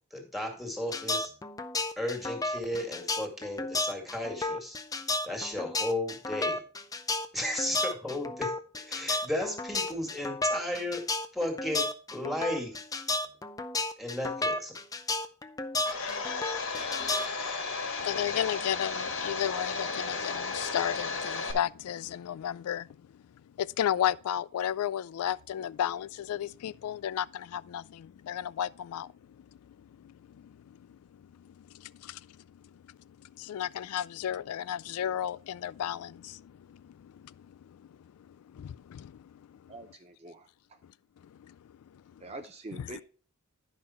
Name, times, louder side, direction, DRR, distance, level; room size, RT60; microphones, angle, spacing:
voice 1, 0.1-1.3 2.0-4.8 5.3-6.6 7.3-11.0 11.3-12.8 14.0-14.8, left 1 dB, ahead, 2.0 m, -34 dB
sound 1, 0.9-17.2, left 2 dB, 15° left, 0.5 m, -32 dB
Domestic sounds home sounds, 15.8-21.5, left 4 dB, 65° left, 1.9 m, -34 dB
voice 2, 18.0-39.7 40.8-42.2 42.7-43.0, left 10 dB, 85° left, 0.3 m, -35 dB
voice 3, 39.7-40.8 42.2-43.0, right 2 dB, 30° right, 0.5 m, -45 dB
10.5 x 5.5 x 4.3 m
head